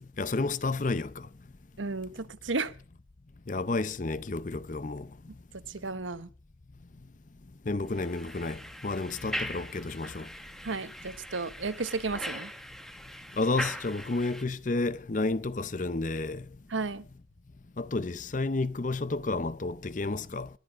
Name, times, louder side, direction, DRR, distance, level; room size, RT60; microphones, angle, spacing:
voice 1, 0.2-1.1 3.5-5.1 7.7-10.3 13.4-16.4 17.8-20.5, left 3 dB, 40° left, 0.6 m, -31 dB
voice 2, 1.8-2.7 5.5-6.3 10.6-12.5 16.7-17.0, right 3 dB, 85° right, 1.0 m, -33 dB
sound 1, 7.9-14.4, equal, ahead, 1.2 m, -40 dB
20.5 x 11.0 x 5.1 m
head